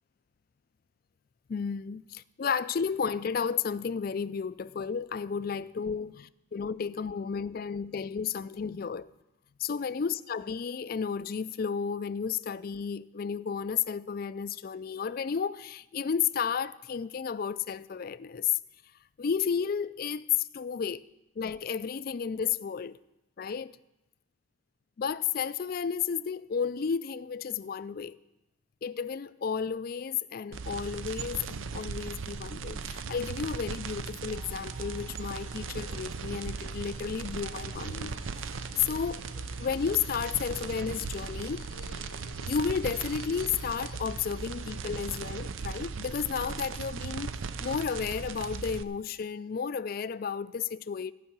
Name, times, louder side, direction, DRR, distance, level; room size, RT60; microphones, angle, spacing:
voice 1, 1.5-9.1 9.6-18.6 19.2-21.0 21.4-23.0 23.4-23.7 25.0-28.2 28.8-38.2 38.8-39.2 39.6-41.7 42.5-47.3 47.6-51.1, left 6 dB, 45° left, 0.3 m, -32 dB
sound 1, 30.5-48.8, right 5 dB, 75° right, 0.5 m, -38 dB
sound 2, 34.3-45.5, left 4 dB, 90° left, 0.9 m, -52 dB
14.5 x 5.6 x 9.5 m
head